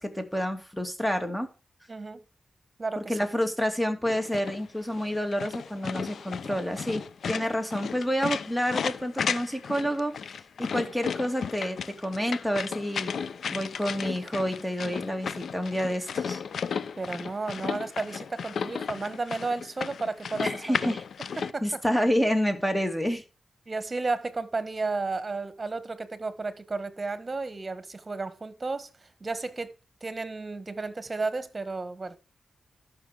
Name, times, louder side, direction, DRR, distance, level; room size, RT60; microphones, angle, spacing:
voice 1, 0.0-1.5 3.0-10.1 10.6-13.2 13.4-16.4 20.4-21.0 21.3-23.2, equal, 5° left, 2.6 m, -29 dB
voice 2, 1.9-2.2 2.8-3.2 17.0-20.9 21.4-21.8 23.7-29.7 30.0-32.2, right 3 dB, 40° right, 1.5 m, -33 dB
sound 1, 4.1-21.5, left 6 dB, 80° left, 0.6 m, -34 dB
13.5 x 6.1 x 5.0 m
cardioid pair, 50°, 0 cm